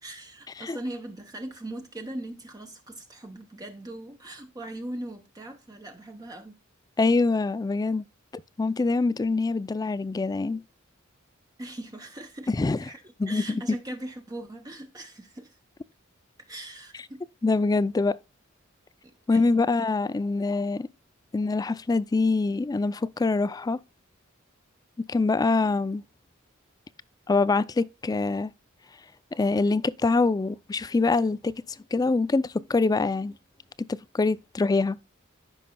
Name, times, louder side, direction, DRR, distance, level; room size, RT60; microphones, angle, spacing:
voice 1, 0.0-6.6 11.6-12.5 12.8-13.0 13.3-15.6 16.5-17.2 19.0-19.7, right 1 dB, 20° right, 0.7 m, -40 dB
voice 2, 7.0-8.0 8.6-10.6 12.5-12.8 13.2-13.6 17.4-18.2 19.3-20.9 21.3-23.8 25.1-26.0 27.3-28.5 29.3-31.5 31.9-33.3 34.1-35.0, left 3 dB, 20° left, 0.3 m, -24 dB
14.5 x 5.4 x 2.2 m
head